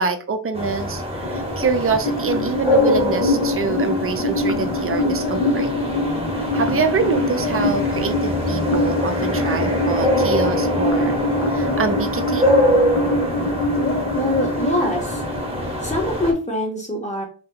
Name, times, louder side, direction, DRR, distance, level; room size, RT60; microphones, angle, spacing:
voice 1, 0.0-5.7 6.4-12.5, right 5 dB, 35° right, 8 dB, 0.4 m, -25 dB
sound 1, 0.5-16.3, equal, 15° right, 0.8 m, -24 dB
sound 2, 1.2-16.2, left 2 dB, 75° left, 0.6 m, -24 dB
voice 2, 14.1-15.2 15.8-17.2, left 1 dB, 15° left, 0 dB, 0.8 m, -24 dB
2.7 x 2.1 x 3.6 m, 0.37 s
wide cardioid pair, 130°, 44 cm